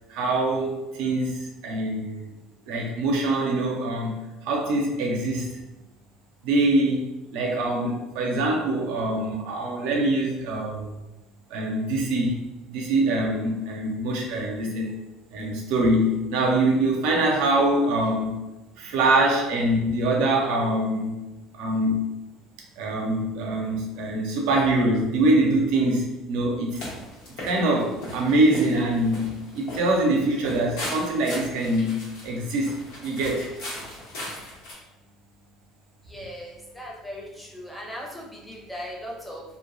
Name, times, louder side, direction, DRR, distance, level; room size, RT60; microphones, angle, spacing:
voice 1, 0.1-2.2 2.7-4.2 4.4-5.5 6.4-10.9 11.5-14.9 15.3-18.3 18.8-21.2 21.5-22.1 22.8-26.9 27.4-33.5, right 1 dB, 65° right, 0 dB, 0.6 m, -24 dB
sound 1, 26.7-34.7, left 1 dB, 70° left, 1.0 m, -38 dB
voice 2, 36.1-39.4, equal, 5° left, -3 dB, 0.9 m, -38 dB
3.1 x 2.1 x 2.5 m, 1.0 s
hypercardioid pair, 65°, 0 cm